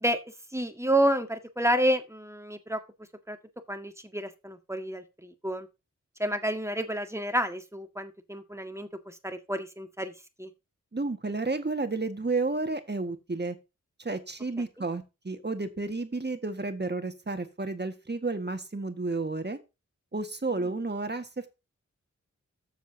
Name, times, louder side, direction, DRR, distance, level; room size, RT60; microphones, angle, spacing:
voice 1, 0.5-2.8 3.3-3.4 3.7-5.7 6.2-10.1 10.4-10.5, right 1 dB, 10° right, 7 dB, 1.8 m, -29 dB
voice 2, 10.9-13.6 14.0-19.6 20.1-21.5, right 3 dB, 35° right, 8 dB, 1.8 m, -31 dB
13.5 x 7.2 x 2.8 m, 0.26 s
cardioid pair, 40°, 30 cm